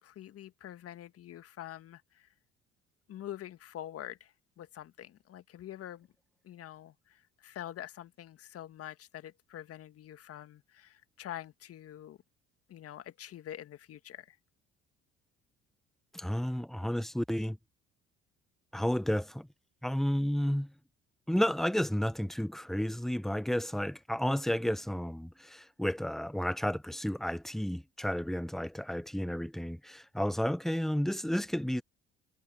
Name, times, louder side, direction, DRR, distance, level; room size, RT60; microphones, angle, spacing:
voice 1, 0.0-2.3 3.1-6.1 6.4-12.2 12.7-14.4, left 12 dB, 50° left, 1.7 m, -46 dB
voice 2, 16.1-17.6 18.7-19.5 19.8-20.7 21.3-31.8, equal, ahead, 1.1 m, -32 dB
hypercardioid pair, 60°, 30 cm